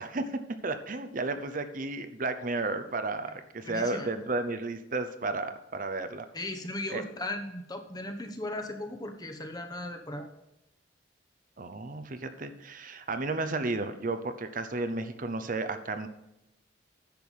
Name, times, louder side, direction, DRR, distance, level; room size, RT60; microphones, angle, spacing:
voice 1, 0.0-6.3 6.9-7.0 11.6-16.1, right 3 dB, 45° right, 9 dB, 0.8 m, -33 dB
voice 2, 3.6-4.1 6.3-10.3, left 1 dB, 20° left, 5 dB, 1.0 m, -37 dB
10.5 x 6.8 x 5.4 m, 0.89 s
head